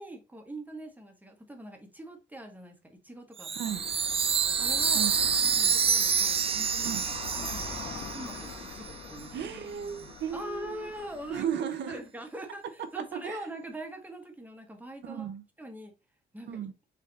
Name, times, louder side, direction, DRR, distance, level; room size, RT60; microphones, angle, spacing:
voice 1, 0.0-3.8 4.6-5.1 5.6-6.9 7.4-9.5 10.3-11.5 11.9-15.3 15.6-15.9 16.3-16.7, right 1 dB, 10° right, 1.1 m, -43 dB
Chime, 3.4-8.9, right 6 dB, 30° right, 0.4 m, -28 dB
voice 2, 3.5-3.8 4.9-5.1 6.8-7.0 9.3-10.9 11.3-12.0 13.0-13.4 15.0-15.4 16.5-16.7, right 8 dB, 65° right, 0.7 m, -35 dB
sound 1, 3.6-11.5, left 5 dB, 80° left, 1.3 m, -43 dB
4.3 x 2.6 x 3.9 m
cardioid pair, 90°, 20 cm